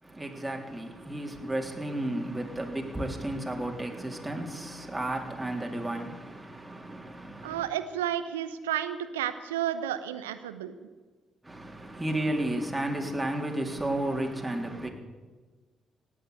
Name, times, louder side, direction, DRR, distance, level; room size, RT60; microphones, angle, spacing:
voice 1, 0.0-7.7 11.4-14.9, right 1 dB, 15° right, 3.5 m, -33 dB
voice 2, 7.4-10.9, right 11 dB, 85° right, 0.8 m, -32 dB
18.0 x 8.7 x 8.7 m
hypercardioid pair, 45°, 0 cm